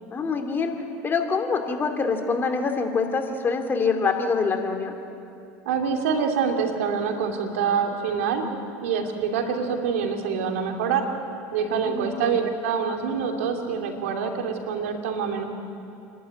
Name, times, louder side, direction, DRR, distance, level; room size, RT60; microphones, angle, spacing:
voice 1, 0.1-0.7 1.0-5.0 11.8-12.4, left 4 dB, 30° left, 4 dB, 2.8 m, -25 dB
voice 2, 5.6-8.4 8.8-11.0 11.5-15.4, right 6 dB, 85° right, 3 dB, 2.8 m, -26 dB
28.5 x 11.5 x 9.5 m, 2.7 s
supercardioid pair, 105°, 7 cm